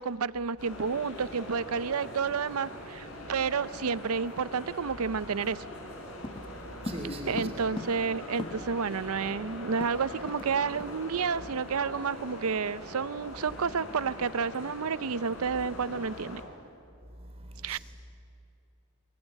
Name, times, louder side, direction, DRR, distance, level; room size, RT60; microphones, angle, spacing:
voice 1, 0.0-5.6 7.3-16.4 17.6-17.8, right 5 dB, 80° right, 0.6 m, -30 dB
sound 1, 0.6-16.4, left 1 dB, 75° left, 4.3 m, -42 dB
sound 2, 6.2-8.9 9.2-9.3 9.5-10.5 10.8-11.0 11.4-11.6, left 1 dB, 20° left, 0.6 m, -41 dB
voice 2, 6.3-7.6 17.1-17.8, right 1 dB, 25° right, 3.4 m, -41 dB
22.5 x 21.5 x 9.9 m
head